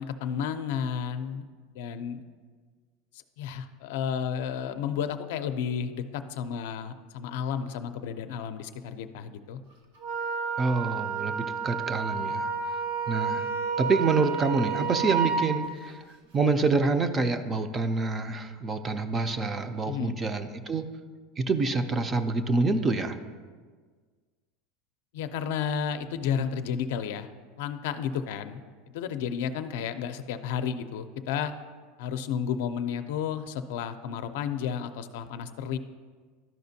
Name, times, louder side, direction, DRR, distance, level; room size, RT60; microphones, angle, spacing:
voice 1, 0.0-1.4 1.7-2.2 3.1-9.6 19.8-20.2 25.1-27.3 27.6-28.6 28.9-31.5 32.0-35.8, left 7 dB, 70° left, 9 dB, 0.4 m, -32 dB
Wind instrument woodwind instrument, 10.0-15.5, right 6 dB, 75° right, 1.2 m, -30 dB
voice 2, 10.6-12.5 13.1-13.5 13.8-16.0 16.3-20.9 21.4-23.2, right 3 dB, 20° right, 9 dB, 0.4 m, -27 dB
12.5 x 5.0 x 2.7 m, 1.5 s
supercardioid pair, 160°, 0 cm